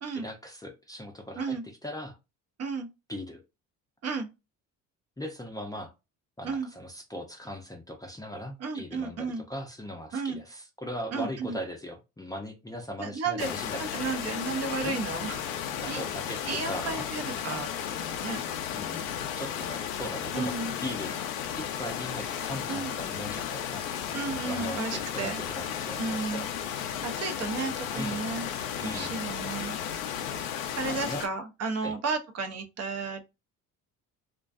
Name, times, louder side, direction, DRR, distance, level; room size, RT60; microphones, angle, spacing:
voice 1, 0.1-1.6 1.8-2.1 3.1-3.4 5.2-5.9 6.4-14.0 14.8-15.0 15.8-17.1 18.7-19.1 19.4-20.5 20.8-21.2 21.5-23.8 24.4-26.5 27.9-28.2 28.8-29.2 30.9-31.2 31.8-31.9, equal, 10° left, 0.5 m, -39 dB
voice 2, 8.6-9.4 10.1-10.4 11.1-11.6 13.0-13.5 13.8-16.0 16.5-17.7 18.0-18.4 20.3-20.7 22.7-22.9 24.1-25.4 26.0-26.5 27.0-28.5 28.8-29.8 30.8-33.2, right 4 dB, 40° right, 0.6 m, -33 dB
sound 1, 13.4-31.3, left 9 dB, 90° left, 0.5 m, -34 dB
2.4 x 2.2 x 2.3 m
supercardioid pair, 75°, 38 cm